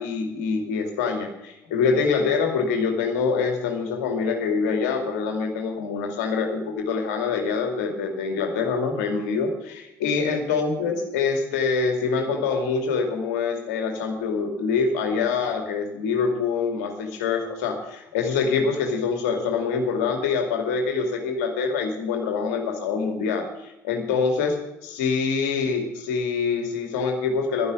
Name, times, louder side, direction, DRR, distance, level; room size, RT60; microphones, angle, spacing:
voice 1, 0.0-27.7, left 5 dB, 70° left, 4 dB, 2.5 m, -25 dB
12.0 x 11.0 x 6.4 m, 0.91 s
figure-of-eight pair, 50°, 9 cm